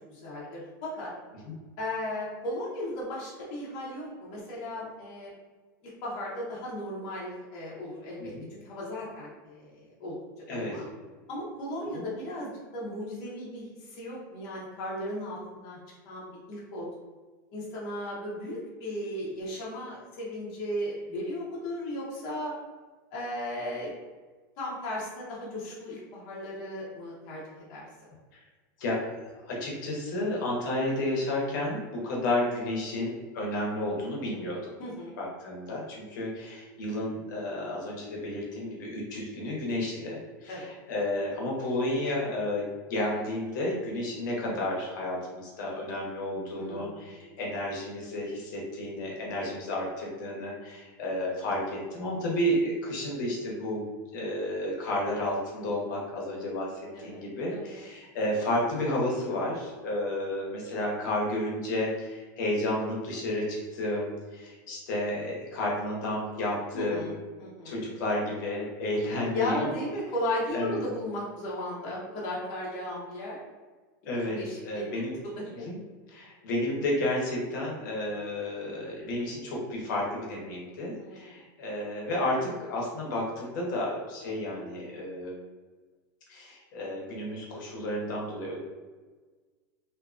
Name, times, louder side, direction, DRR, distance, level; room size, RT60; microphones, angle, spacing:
voice 1, 0.1-1.1 1.8-5.3 6.0-10.2 10.5-10.8 11.3-15.8 16.0-16.9 17.5-22.5 23.1-23.9 24.6-27.9 34.8-35.1 40.5-40.7 46.6-47.1 56.9-57.2 57.5-57.8 66.7-67.7 69.3-73.4 74.3-75.7 81.0-81.3, left 1 dB, 35° left, -6 dB, 0.6 m, -36 dB
voice 2, 10.5-10.8 11.9-12.0 28.3-28.4 28.8-29.0 29.4-34.8 35.2-53.8 54.1-67.1 67.6-69.7 70.5-70.8 74.1-75.2 75.6-75.8 76.1-85.4 86.3-88.6, left 1 dB, 70° left, -3 dB, 0.8 m, -31 dB
2.5 x 2.4 x 2.4 m, 1.4 s
supercardioid pair, 175°, 11 cm